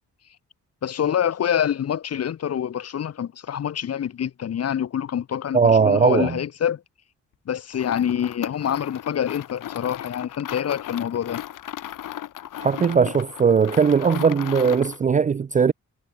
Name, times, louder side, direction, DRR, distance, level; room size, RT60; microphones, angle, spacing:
voice 1, 0.8-6.8 7.5-11.4, left 9 dB, 50° left, 2.1 m, -26 dB
voice 2, 5.5-6.4 12.6-15.7, right 6 dB, 25° right, 0.4 m, -19 dB
sound 1, 7.7-15.0, left 12 dB, 90° left, 2.5 m, -36 dB
wide cardioid pair, 170°, 31 cm